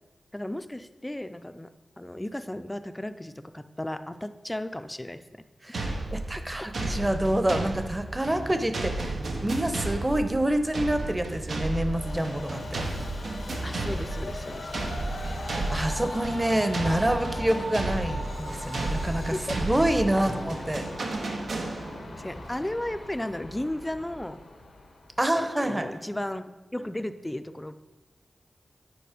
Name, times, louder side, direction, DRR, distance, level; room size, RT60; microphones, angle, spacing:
voice 1, 0.3-1.7 2.0-5.2 13.6-14.7 19.3-19.8 20.2-20.3 22.1-24.4 25.3-26.5 26.7-27.7, left 1 dB, 15° left, 10 dB, 0.5 m, -34 dB
sound 1, 5.7-22.2, right 2 dB, 85° right, 0.9 m, -33 dB
voice 2, 6.3-12.8 15.3-15.4 15.7-20.8 25.2-25.9, right 1 dB, 20° right, 8 dB, 0.8 m, -27 dB
Train, 11.9-25.3, left 1 dB, 90° left, 1.3 m, -39 dB
9.3 x 4.3 x 5.0 m, 1.2 s
cardioid pair, 45°, 0 cm